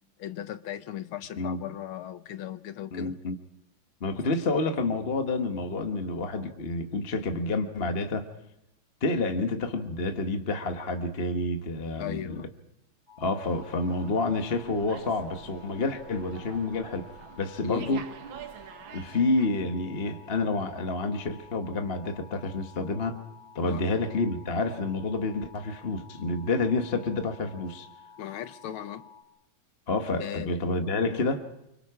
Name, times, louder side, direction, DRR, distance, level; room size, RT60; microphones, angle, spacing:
voice 1, 0.2-3.2 12.0-12.5 17.6-18.0 23.6-23.8 28.2-29.1 30.2-30.6, left 11 dB, 90° left, 1.9 m, -37 dB
voice 2, 2.9-3.4 4.0-8.3 9.0-12.5 13.2-18.1 18.9-23.2 23.5-27.9 29.9-31.4, left 3 dB, 35° left, 1.4 m, -29 dB
sound 1, 13.1-29.2, left 5 dB, 40° right, 3.4 m, -52 dB
Slam, 13.4-19.5, right 8 dB, 75° right, 2.0 m, -47 dB
29.0 x 25.5 x 4.8 m
omnidirectional pair, 2.2 m